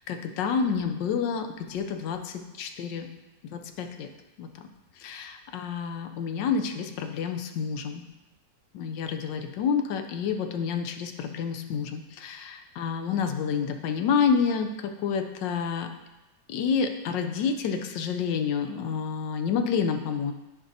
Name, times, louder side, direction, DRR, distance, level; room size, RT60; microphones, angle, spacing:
voice 1, 0.1-3.1 3.5-4.1 4.4-4.5 5.0-8.0 8.7-15.9 16.5-20.3, left 6 dB, 90° left, 6 dB, 1.3 m, -29 dB
10.5 x 5.0 x 2.7 m, 1.0 s
omnidirectional pair, 1.9 m